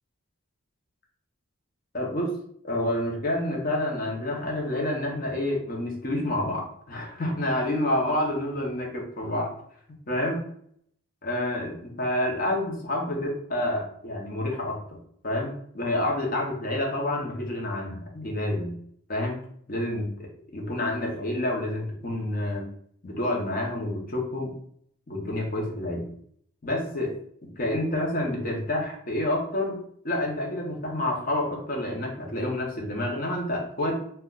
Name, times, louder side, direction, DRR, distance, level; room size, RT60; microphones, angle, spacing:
voice 1, 1.9-2.4 2.6-9.5 10.1-10.4 11.2-15.0 15.2-18.7 19.1-19.4 19.7-20.3 20.5-22.7 23.0-24.5 25.1-26.1 26.6-27.1 27.4-29.8 30.0-34.0, left 1 dB, 40° left, 0 dB, 0.7 m, -28 dB
2.4 x 2.1 x 3.6 m, 0.64 s
head